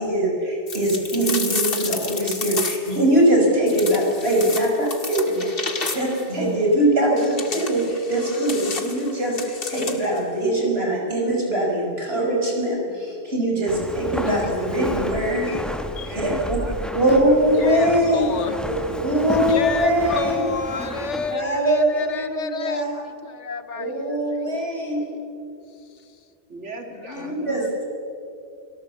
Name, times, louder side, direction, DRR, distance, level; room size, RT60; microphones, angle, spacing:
voice 1, 0.0-5.5 5.9-15.5 16.1-16.6 16.9-18.3 18.6-20.5 21.3-22.9 23.8-25.1 27.2-27.9, right 1 dB, 60° right, -1 dB, 5.8 m, -22 dB
sound 1, 0.7-3.0 3.7-6.3 7.2-10.2, left 4 dB, 55° left, 2.0 m, -31 dB
voice 2, 2.9-3.2 5.0-6.0 13.5-13.6 16.0-17.4 18.5-18.6 19.3-19.8 22.2-23.1 26.5-27.4, right 2 dB, 85° right, 3 dB, 2.9 m, -43 dB
Walk footsteps, 13.7-21.4, equal, ahead, 1.6 m, -32 dB
voice 3, 14.3-15.2 15.5-15.6 16.0-16.4 17.5-18.7 19.5-22.9 23.2-24.5 27.1-27.3, left 6 dB, 80° left, 12 dB, 1.4 m, -31 dB
30.0 x 18.0 x 7.2 m, 2.5 s
omnidirectional pair, 1.2 m